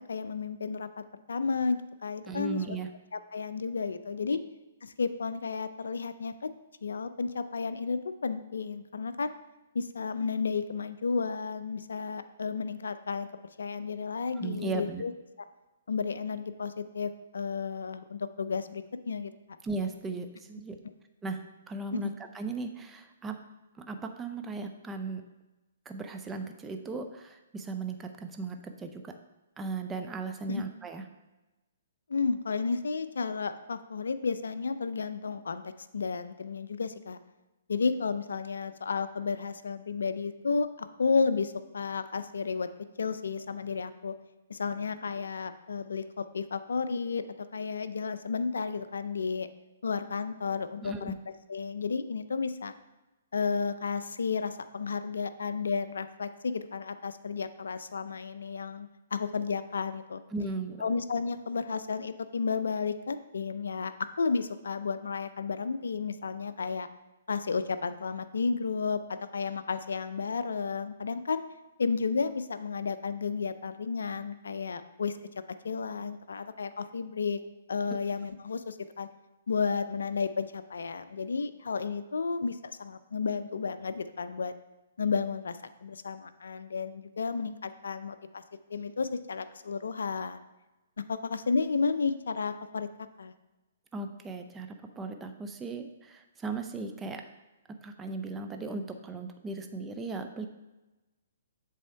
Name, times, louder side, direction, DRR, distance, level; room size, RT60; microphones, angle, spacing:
voice 1, 0.0-2.8 3.1-4.4 4.8-6.5 6.8-9.3 9.7-13.3 13.6-15.1 15.9-19.3 22.0-22.1 30.5-30.6 32.1-37.2 37.7-42.7 43.0-44.1 44.5-47.2 47.5-49.5 49.8-51.1 51.5-52.7 53.3-60.2 60.8-66.9 67.3-71.4 71.8-75.1 75.6-77.4 77.7-79.1 79.5-84.5 85.0-88.4 88.7-90.4 91.1-92.9 93.2-93.3, left 5 dB, 80° left, 11 dB, 0.4 m, -32 dB
voice 2, 2.2-2.9 14.4-15.0 19.6-20.8 21.2-23.4 23.8-25.2 25.9-29.1 29.6-31.0 50.8-51.1 60.3-60.8 93.9-97.2 97.7-100.5, right 3 dB, 15° right, 6 dB, 0.5 m, -37 dB
7.5 x 3.4 x 4.6 m, 1.1 s
hypercardioid pair, 135°, 0 cm